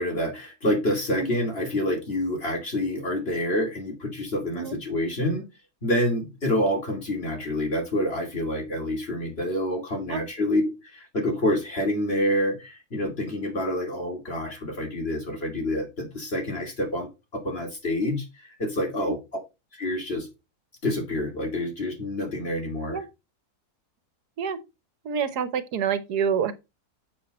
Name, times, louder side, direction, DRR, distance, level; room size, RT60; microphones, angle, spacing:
voice 1, 0.0-5.5 5.8-10.6 10.9-18.2 18.6-19.2 19.7-20.3 20.8-23.0, left 1 dB, 40° left, 2.9 m, -27 dB
voice 2, 25.0-26.5, right 7 dB, 90° right, 1.6 m, -27 dB
7.3 x 7.1 x 4.2 m
omnidirectional pair, 1.6 m